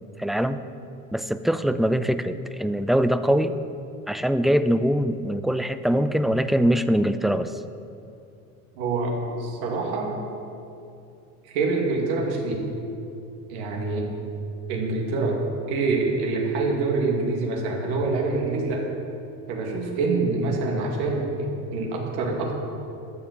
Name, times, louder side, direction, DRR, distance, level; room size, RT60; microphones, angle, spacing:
voice 1, 0.2-0.6 1.1-3.5 4.1-7.6, equal, ahead, 11 dB, 0.4 m, -23 dB
voice 2, 8.8-10.1 11.4-12.6 13.5-14.0 14.7-15.4 15.7-18.9 19.5-22.6, right 3 dB, 75° right, -1 dB, 2.5 m, -26 dB
12.5 x 7.0 x 6.9 m, 2.6 s
supercardioid pair, 90°, 39 cm